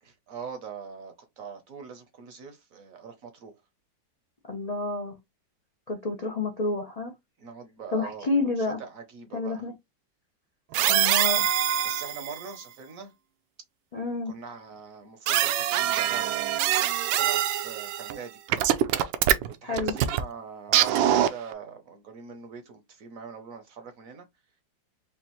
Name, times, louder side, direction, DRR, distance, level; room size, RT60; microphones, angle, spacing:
voice 1, 0.0-3.5 7.4-8.3 8.6-9.6 10.7-11.2 11.8-13.1 14.2-16.5 17.2-18.8 19.4-24.3, right 6 dB, 60° right, 1.0 m, -42 dB
voice 2, 4.5-5.1 5.9-7.1 7.9-8.8 9.3-9.7 10.9-11.6 13.9-14.3 19.6-19.9, left 3 dB, 75° left, 0.3 m, -29 dB
sound 1, 10.7-12.4 15.3-18.2 18.5-20.2 20.7-21.5, right 12 dB, 80° right, 1.3 m, -24 dB
5.2 x 2.5 x 3.0 m
omnidirectional pair, 2.0 m